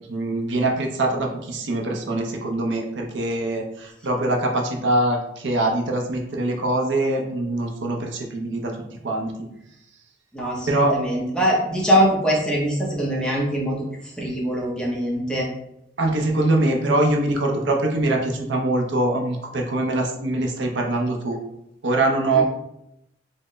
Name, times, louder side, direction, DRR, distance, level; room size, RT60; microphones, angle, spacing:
voice 1, 0.1-8.8 9.0-9.3 10.7-11.0 16.0-21.4 21.8-22.4, right 2 dB, 70° right, 2 dB, 0.6 m, -23 dB
voice 2, 10.3-13.8 14.2-15.5 22.3-22.4, equal, 5° left, -4 dB, 0.7 m, -22 dB
4.1 x 2.1 x 3.1 m, 0.81 s
head